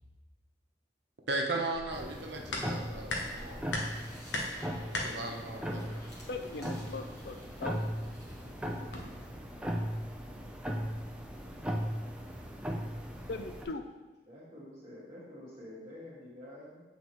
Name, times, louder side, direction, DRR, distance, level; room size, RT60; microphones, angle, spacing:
voice 1, 1.3-3.6 4.9-6.0 8.9-9.1, right 2 dB, 75° right, 1 dB, 0.9 m, -37 dB
sound 1, 1.7-9.4, left 2 dB, 90° left, 0.9 m, -42 dB
sound 2, 1.9-13.7, equal, 5° right, 0.5 m, -38 dB
sound 3, 3.2-8.9, equal, 15° left, 1.3 m, -56 dB
voice 2, 6.3-7.8 13.3-13.9, left 3 dB, 60° left, 7 dB, 0.5 m, -39 dB
voice 3, 14.3-16.8, left 1 dB, 30° right, -12 dB, 1.6 m, -48 dB
8.2 x 3.9 x 3.0 m, 1.2 s
head